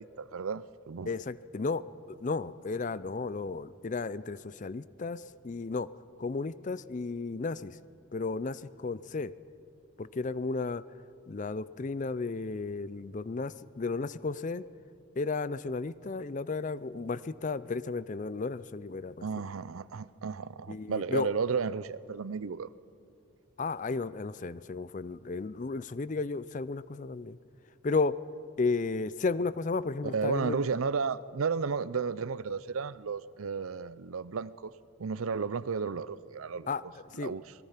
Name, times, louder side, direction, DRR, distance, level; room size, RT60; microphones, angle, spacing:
voice 1, 0.0-1.2 19.2-22.7 30.0-34.7 35.0-37.5, right 5 dB, 90° right, 17 dB, 0.6 m, -33 dB
voice 2, 1.1-5.9 6.2-7.7 8.1-9.3 10.0-10.8 11.3-14.6 15.2-19.2 20.7-21.3 23.6-27.4 27.8-28.2 28.6-30.6 36.7-36.8 37.2-37.3, left 3 dB, 35° left, 17 dB, 0.4 m, -33 dB
26.0 x 20.0 x 5.8 m, 2.6 s
head